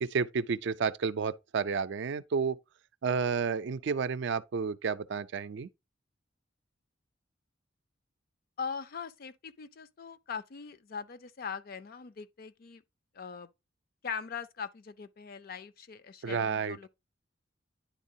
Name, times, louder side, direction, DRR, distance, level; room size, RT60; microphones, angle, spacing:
voice 1, 0.0-2.6 3.0-5.7 16.2-16.9, right 5 dB, 65° right, 0.4 m, -31 dB
voice 2, 8.6-12.8 13.1-13.5 14.0-16.9, left 6 dB, 50° left, 0.5 m, -41 dB
10.0 x 3.6 x 2.7 m
head